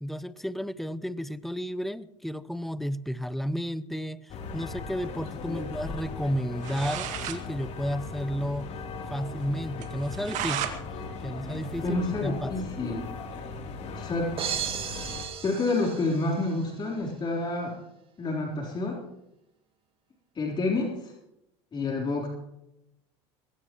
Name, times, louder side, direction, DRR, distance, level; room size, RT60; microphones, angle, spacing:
voice 1, 0.0-8.7 9.1-10.8 11.2-11.9 12.2-12.5, equal, ahead, 16 dB, 0.7 m, -32 dB
sound 1, 4.3-15.3, left 3 dB, 50° left, 3.2 m, -38 dB
voice 2, 5.5-5.8 11.8-13.1 13.8-14.4 14.9-15.0 15.4-17.8 18.2-19.0 20.4-21.1 21.7-22.3, left 2 dB, 30° left, -2 dB, 3.6 m, -29 dB
sound 2, 6.3-6.4 6.6-7.4 7.8-7.9 8.1-8.2 8.6-8.7 9.1-9.2 9.8-10.8 11.1-12.5, right 10 dB, 55° right, 2.0 m, -35 dB
sound 3, 14.4-16.6, right 9 dB, 40° right, 2.3 m, -35 dB
21.5 x 17.5 x 3.1 m, 0.85 s
supercardioid pair, 95°, 15 cm